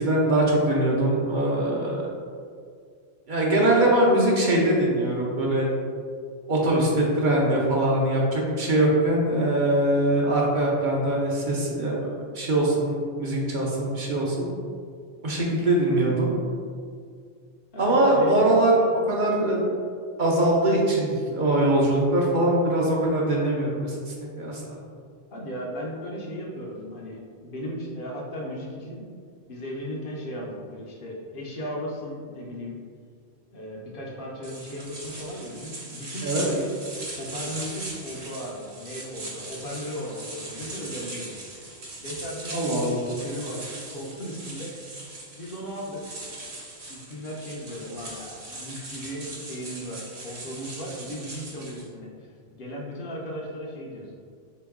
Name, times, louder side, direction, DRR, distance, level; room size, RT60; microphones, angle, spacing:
voice 1, 0.0-2.1 3.3-5.7 6.5-14.5 15.2-16.4 17.8-18.7 19.1-19.6 20.2-24.8 36.2-36.5 42.5-43.0, right 1 dB, 55° right, -3 dB, 0.7 m, -22 dB
voice 2, 17.7-18.3 25.3-29.0 29.5-32.8 33.5-36.7 37.1-41.3 42.0-46.0 46.9-54.1, equal, 60° left, -3 dB, 0.9 m, -36 dB
sound 1, 34.4-51.9, right 2 dB, 75° right, 1.1 m, -39 dB
3.7 x 3.0 x 3.5 m, 2.1 s
omnidirectional pair, 1.1 m